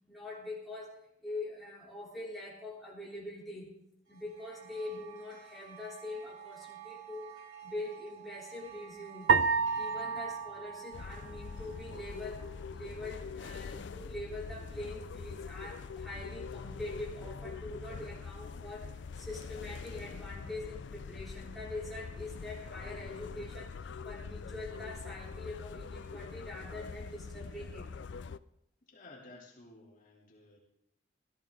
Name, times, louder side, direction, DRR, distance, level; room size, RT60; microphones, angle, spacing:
voice 1, 0.1-3.7 4.1-9.3 9.7-27.9, left 2 dB, ahead, -6 dB, 3.4 m, -44 dB
sound 1, 4.1-12.7, right 11 dB, 85° right, 4.6 m, -50 dB
sound 2, 9.3-11.8, right 5 dB, 70° right, 0.5 m, -30 dB
sound 3, 10.9-28.4, left 5 dB, 60° left, 0.4 m, -44 dB
voice 2, 28.8-30.6, left 2 dB, 45° left, -3 dB, 3.0 m, -54 dB
16.5 x 14.0 x 3.7 m, 0.80 s
head